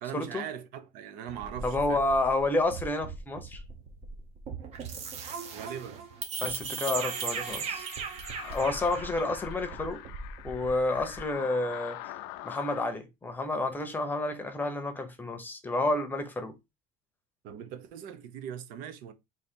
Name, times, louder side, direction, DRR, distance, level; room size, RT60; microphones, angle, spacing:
voice 1, 0.0-2.1 5.5-6.0 17.4-19.1, right 9 dB, 70° right, 0.8 m, -40 dB
sound 1, 1.3-11.3, right 5 dB, 45° right, 1.0 m, -38 dB
voice 2, 1.6-3.6 6.4-7.8 8.4-10.0 10.4-12.0 12.4-16.6, left 2 dB, 10° left, 0.8 m, -30 dB
sound 2, 6.4-12.9, left 15 dB, 90° left, 0.5 m, -44 dB
4.0 x 2.8 x 4.4 m
cardioid pair, 155°, 15 cm